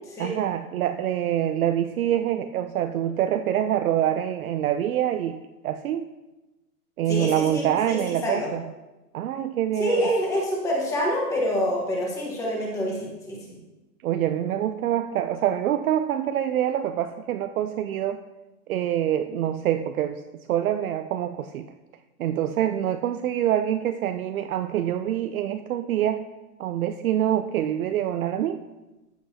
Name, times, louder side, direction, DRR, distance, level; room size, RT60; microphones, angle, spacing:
voice 1, 0.2-5.4 5.6-6.1 7.0-8.6 9.1-10.1 14.0-18.2 18.7-21.7 22.2-26.2 26.6-28.6, right 11 dB, 65° right, 8 dB, 0.6 m, -25 dB
voice 2, 7.1-8.5 9.8-13.5, equal, 5° left, -3 dB, 1.2 m, -27 dB
13.5 x 7.7 x 2.8 m, 1.1 s
hypercardioid pair, 175°, 47 cm